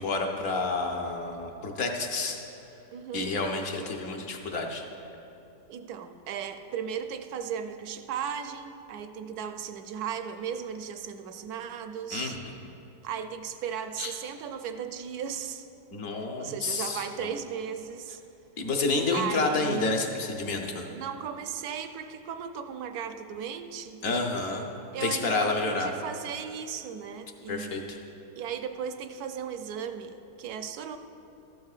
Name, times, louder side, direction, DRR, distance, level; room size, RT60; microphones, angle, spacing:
voice 1, 0.0-2.4 3.1-4.9 12.1-12.4 14.0-14.1 15.9-17.3 18.6-20.8 24.0-24.6 25.0-25.9 27.5-28.0, left 3 dB, 55° left, 2 dB, 1.2 m, -29 dB
voice 2, 2.9-3.3 5.7-12.4 13.0-15.7 16.4-18.2 19.1-20.0 20.9-24.0 24.9-28.0 28.4-31.0, right 7 dB, 70° right, 8 dB, 1.0 m, -36 dB
14.0 x 12.0 x 2.4 m, 2.9 s
omnidirectional pair, 1.8 m